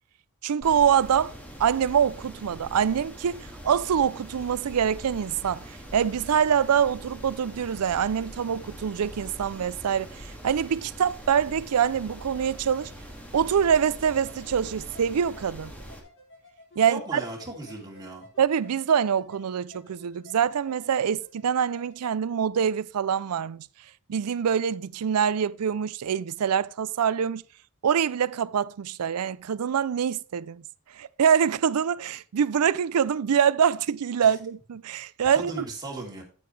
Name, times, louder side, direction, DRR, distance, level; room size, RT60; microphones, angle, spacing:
voice 1, 0.4-1.3 1.6-5.6 5.9-12.9 13.3-15.7 16.8-17.2 18.4-23.7 24.1-27.4 27.8-30.6 31.0-35.6, right 8 dB, 90° right, 0.4 m, -25 dB
sound 1, 0.6-16.0, equal, 5° left, 2.1 m, -43 dB
sound 2, 13.4-22.1, left 1 dB, 55° left, 4.6 m, -54 dB
voice 2, 16.8-18.3 34.2-34.3 35.3-36.2, right 2 dB, 20° right, 3.1 m, -37 dB
9.6 x 9.6 x 3.3 m
head